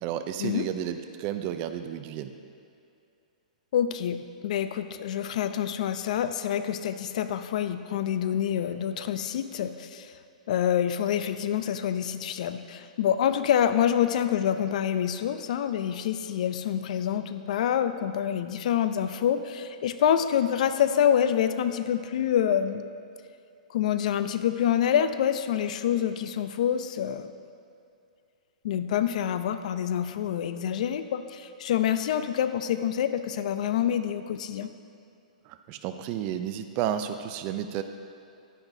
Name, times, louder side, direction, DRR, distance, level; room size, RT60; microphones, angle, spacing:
voice 1, 0.0-2.3 35.4-37.8, right 10 dB, 35° right, 9 dB, 0.5 m, -32 dB
voice 2, 3.7-4.2 4.4-10.1 10.5-22.8 23.7-27.3 28.6-34.7, left 9 dB, 60° left, 10 dB, 0.5 m, -26 dB
10.5 x 9.8 x 2.7 m, 2.6 s
hypercardioid pair, 145°, 4 cm